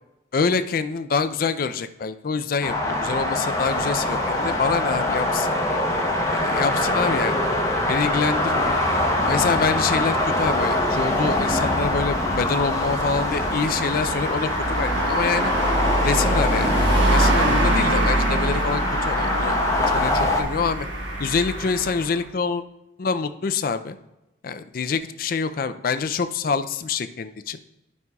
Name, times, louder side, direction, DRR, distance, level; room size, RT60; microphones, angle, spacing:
voice 1, 0.3-5.5 6.3-7.4 7.9-8.8 9.2-15.5 16.0-20.9 21.2-22.6 23.0-24.0 24.4-27.6, left 5 dB, 50° left, 10 dB, 0.4 m, -26 dB
sound 1, 2.6-20.4, left 1 dB, 15° left, 0.8 m, -24 dB
sound 2, 11.7-22.2, right 1 dB, 75° right, 1.3 m, -25 dB
12.0 x 5.4 x 2.3 m, 0.95 s
head